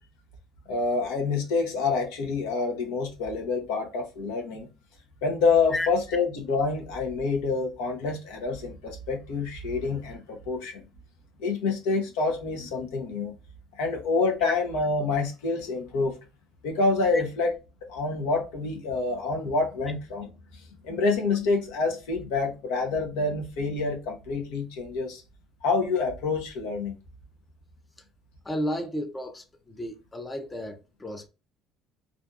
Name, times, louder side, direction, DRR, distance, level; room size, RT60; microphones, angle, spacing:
voice 1, 0.7-4.7 5.2-10.8 11.4-13.3 13.8-16.2 16.6-17.5 17.9-25.2 25.6-26.9, left 4 dB, 85° left, 0.7 m, -27 dB
voice 2, 28.4-31.3, equal, 20° left, 0.4 m, -33 dB
2.6 x 2.4 x 2.2 m
supercardioid pair, 90°, 0 cm